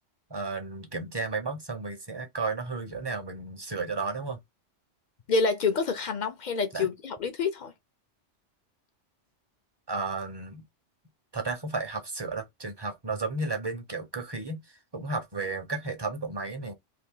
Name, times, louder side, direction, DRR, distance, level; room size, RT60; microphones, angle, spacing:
voice 1, 0.3-4.4 6.7-6.9 9.9-10.6 11.3-16.7, right 3 dB, 25° right, 0.6 m, -33 dB
voice 2, 5.3-7.7, left 4 dB, 50° left, 0.6 m, -27 dB
2.8 x 2.5 x 3.7 m
omnidirectional pair, 1.2 m